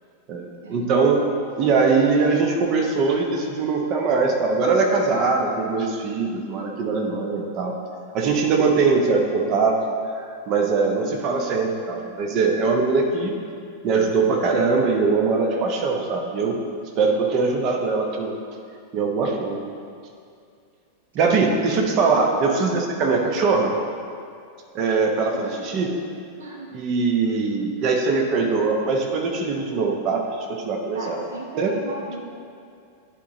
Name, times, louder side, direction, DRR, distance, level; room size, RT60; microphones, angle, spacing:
voice 1, 0.3-1.2 1.6-7.8 8.1-9.8 10.5-13.4 13.8-16.6 17.0-18.4 18.9-19.6 21.1-23.8 24.7-25.9 26.7-31.2 31.6-31.7, right 4 dB, 40° right, 2 dB, 0.9 m, -21 dB
voice 2, 25.3-25.9 26.4-26.7 30.9-32.4, right 2 dB, 65° right, 0 dB, 0.7 m, -36 dB
11.0 x 3.8 x 4.0 m, 2.3 s
figure-of-eight pair, 90°, 0 cm